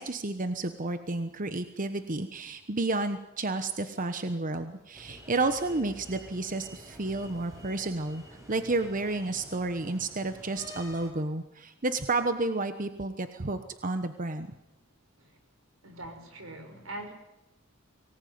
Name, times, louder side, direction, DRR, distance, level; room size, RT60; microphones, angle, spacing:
voice 1, 0.0-14.5, right 2 dB, 40° right, 9 dB, 1.2 m, -31 dB
sound 1, 4.9-11.1, equal, 15° right, 5.0 m, -49 dB
voice 2, 15.8-17.1, right 1 dB, 90° right, 6 dB, 5.6 m, -42 dB
23.5 x 19.0 x 9.5 m, 0.92 s
head